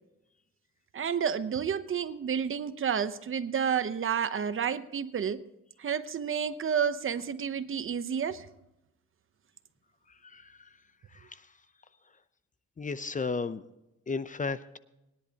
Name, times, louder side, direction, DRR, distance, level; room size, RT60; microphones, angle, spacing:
voice 1, 0.9-5.4 5.8-8.5, right 7 dB, 45° right, 13 dB, 0.9 m, -30 dB
voice 2, 10.2-10.7 11.1-11.4 12.8-13.6 14.1-14.8, left 4 dB, 25° left, 13 dB, 0.7 m, -34 dB
21.5 x 10.5 x 2.9 m, 0.90 s
cardioid pair, 90°, 30 cm